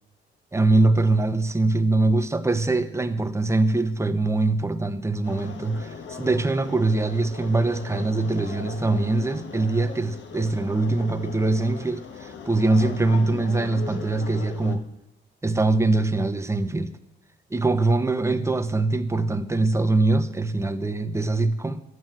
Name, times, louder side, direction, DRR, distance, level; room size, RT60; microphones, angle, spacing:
voice 1, 0.5-14.9 15.4-16.9 17.5-21.8, right 2 dB, 15° right, 1.1 m, -23 dB
sound 1, 5.2-14.8, left 6 dB, 65° left, 1.7 m, -39 dB
12.5 x 9.5 x 7.8 m
cardioid pair, 90°, 20 cm